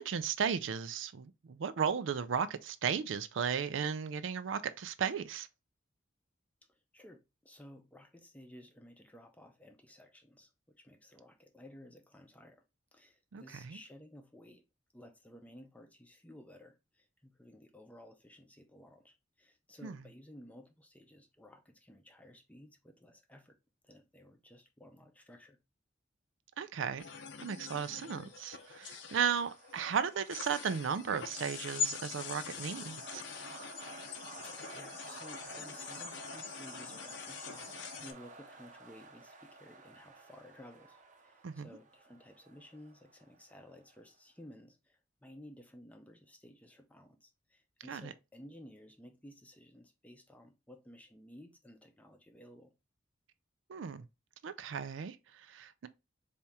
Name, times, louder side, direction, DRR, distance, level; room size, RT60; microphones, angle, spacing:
voice 1, 0.0-5.5 13.3-13.8 19.8-20.0 26.6-27.0 27.4-33.2 41.4-41.7 47.9-48.1 53.7-54.0 54.4-55.9, right 7 dB, 80° right, 0.4 m, -35 dB
voice 2, 6.7-12.6 12.9-14.6 14.9-23.6 23.8-25.6 34.4-52.7, equal, 10° left, 0.6 m, -55 dB
sound 1, 27.0-38.1, left 6 dB, 65° left, 0.7 m, -43 dB
sound 2, 27.4-44.0, right 3 dB, 40° right, 0.7 m, -53 dB
4.2 x 2.8 x 3.5 m
head